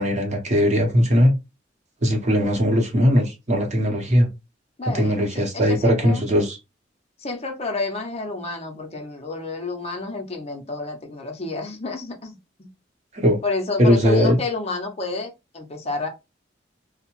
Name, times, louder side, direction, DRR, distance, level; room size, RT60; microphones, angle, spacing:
voice 1, 0.0-1.3 2.0-4.3 4.9-6.6 13.1-13.4 13.8-14.4, equal, 40° right, 0.8 m, -19 dB
voice 2, 4.8-6.2 7.2-12.7 13.4-16.1, left 3 dB, 35° left, 0.6 m, -30 dB
2.7 x 2.0 x 3.0 m
head